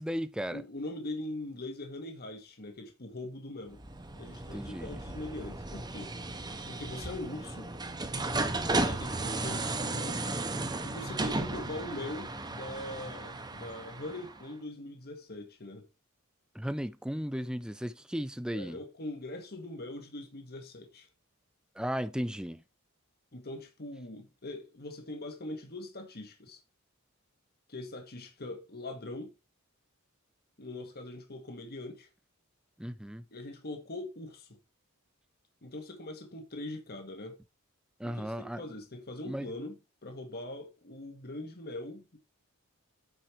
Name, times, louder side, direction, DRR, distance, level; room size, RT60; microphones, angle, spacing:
voice 1, 0.0-0.6 4.5-5.0 16.5-18.8 21.8-22.6 32.8-33.2 38.0-38.6 39.3-39.5, equal, 5° right, 0.5 m, -35 dB
voice 2, 0.5-3.8 4.2-6.1 6.7-7.7 8.8-10.4 10.8-15.8 18.5-21.1 23.3-26.6 27.7-29.3 30.6-32.1 33.3-34.6 35.6-37.4 38.0-42.2, left 2 dB, 45° left, 1.7 m, -42 dB
sound 1, 3.7-14.4, right 2 dB, 20° right, 1.0 m, -35 dB
9.0 x 5.1 x 4.5 m
head